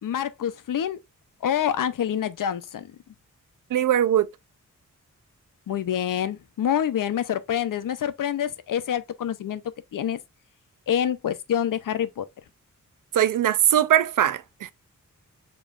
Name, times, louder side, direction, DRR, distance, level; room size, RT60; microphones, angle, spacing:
voice 1, 0.0-1.0 1.4-2.9 5.7-9.6 9.9-10.2 10.9-12.3, left 9 dB, 80° left, 0.6 m, -26 dB
voice 2, 3.7-4.3 13.1-14.7, right 11 dB, 80° right, 0.5 m, -21 dB
7.2 x 3.0 x 2.4 m
wide cardioid pair, 140°, 32 cm